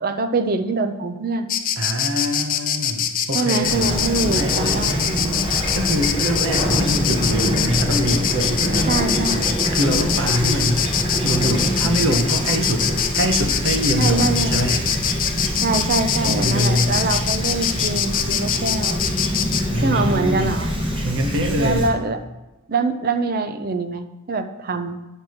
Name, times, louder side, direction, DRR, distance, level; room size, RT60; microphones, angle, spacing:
voice 1, 0.0-1.5 3.3-5.4 8.9-9.4 14.0-14.6 15.5-19.0 19.8-20.7 21.6-22.2 22.7-25.0, right 3 dB, 45° right, 8 dB, 0.6 m, -24 dB
Insect, 1.5-19.6, left 9 dB, 40° left, 0.5 m, -23 dB
voice 2, 1.8-4.0 4.3-5.1 5.7-9.0 9.7-10.9 11.2-14.8 16.2-17.0 19.7-20.5 21.0-21.9, equal, 60° right, 4 dB, 1.0 m, -24 dB
Fowl / Chirp tweet, 3.6-21.9, equal, 25° right, 1.2 m, -25 dB
8.8 x 4.4 x 6.4 m, 1.0 s
head